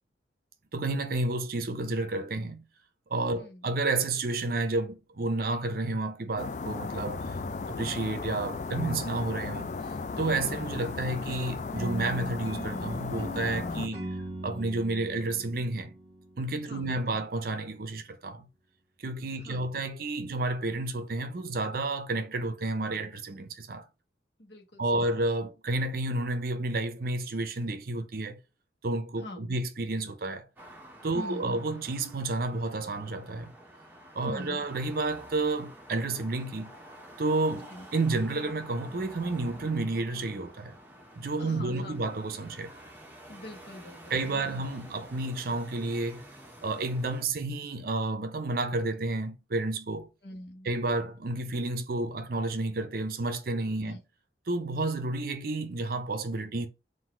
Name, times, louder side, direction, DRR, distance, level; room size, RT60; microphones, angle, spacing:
voice 1, 0.7-2.6 3.1-7.4 7.7-9.7 10.2-14.0 14.4-15.9 16.4-18.5 19.0-23.8 24.8-28.4 28.8-30.5 31.0-33.5 34.1-36.7 37.2-40.8 41.2-42.7 44.1-46.3 46.6-50.1 50.6-54.0 54.5-56.7, right 2 dB, 50° right, 0.6 m, -31 dB
voice 2, 3.3-3.7 7.3-7.8 13.9-14.2 16.7-16.9 19.4-19.7 24.4-25.1 29.2-29.6 31.1-31.6 34.3-34.7 37.5-37.9 41.4-42.0 43.3-44.6 50.2-50.7 53.8-54.0, left 1 dB, 70° left, 1.1 m, -44 dB
sound 1, 6.4-13.9, left 4 dB, 40° left, 0.3 m, -35 dB
sound 2, 11.8-16.9, right 2 dB, 35° right, 1.2 m, -41 dB
sound 3, 30.6-47.2, right 1 dB, 10° right, 0.9 m, -50 dB
4.0 x 2.6 x 4.3 m
head